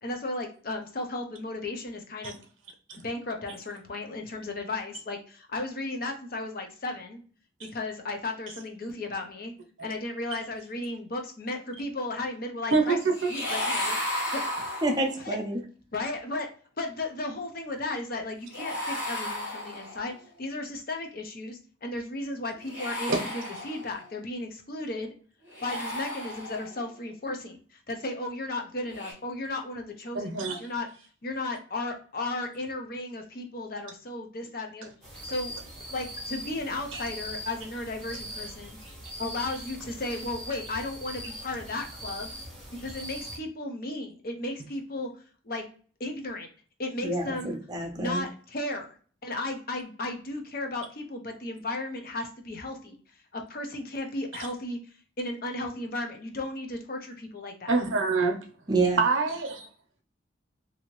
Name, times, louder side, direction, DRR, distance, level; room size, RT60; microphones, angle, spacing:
voice 1, 0.0-2.4 2.9-7.2 7.6-9.5 9.8-13.0 13.2-14.0 14.3-14.8 15.2-15.4 15.9-16.5 16.8-25.1 25.6-30.9 31.2-34.9 35.2-35.5 35.9-38.8 39.2-42.3 42.8-45.1 45.4-45.7 46.0-46.5 46.8-47.6 47.9-49.0 49.2-53.0 53.3-54.8 55.2-57.7, left 2 dB, 45° left, 0.6 m, -35 dB
voice 2, 12.7-13.3 23.1-23.2 30.1-30.6 36.9-37.0 54.4-54.5 57.7-58.4 59.0-59.7, right 4 dB, 80° right, 0.7 m, -26 dB
sound 1, 13.1-15.3 18.5-20.2 22.6-24.1 25.5-26.8 28.9-29.1, left 1 dB, 70° left, 1.4 m, -34 dB
voice 3, 14.8-15.6 47.0-47.3 47.7-48.3 58.7-59.0, right 2 dB, 20° right, 0.5 m, -27 dB
sound 2, 35.0-43.4, equal, 5° left, 1.0 m, -41 dB
2.7 x 2.7 x 2.9 m
head